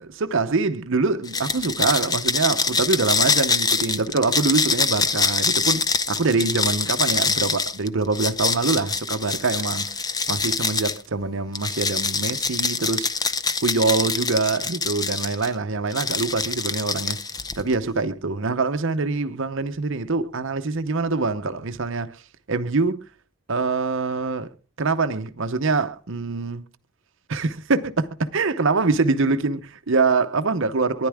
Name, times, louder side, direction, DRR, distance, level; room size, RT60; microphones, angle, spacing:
voice 1, 0.2-9.9 10.3-13.1 13.6-17.2 17.6-22.2 22.5-23.0 23.5-24.5 24.8-26.6 27.3-31.1, right 3 dB, 60° right, 0.8 m, -24 dB
sound 1, 1.3-11.0 11.6-15.5 15.9-17.7, left 4 dB, 15° left, 0.5 m, -24 dB
13.5 x 10.5 x 3.5 m
head